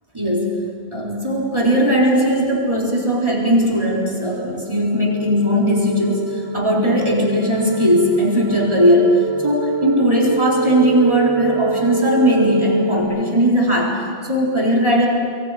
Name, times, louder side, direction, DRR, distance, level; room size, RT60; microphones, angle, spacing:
voice 1, 0.1-0.6 0.9-15.1, equal, 30° right, -3 dB, 4.2 m, -18 dB
sound 1, 3.5-13.0, right 3 dB, 25° left, 7.3 m, -26 dB
27.0 x 23.0 x 5.1 m, 2.1 s
omnidirectional pair, 1.0 m